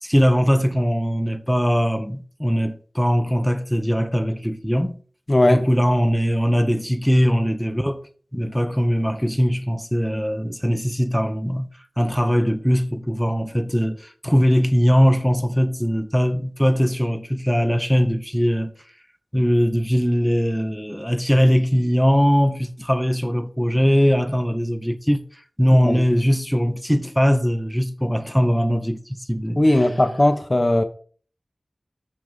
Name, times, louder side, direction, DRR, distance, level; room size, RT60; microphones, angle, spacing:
voice 1, 0.0-5.0 5.5-8.0 8.3-11.7 12.0-18.7 19.3-25.2 25.6-29.6, equal, ahead, 1.1 m, -20 dB
voice 2, 5.3-5.6 25.8-26.0 29.6-30.8, left 1 dB, 35° left, 0.9 m, -17 dB
7.2 x 6.0 x 5.2 m
wide cardioid pair, 45°, 0 cm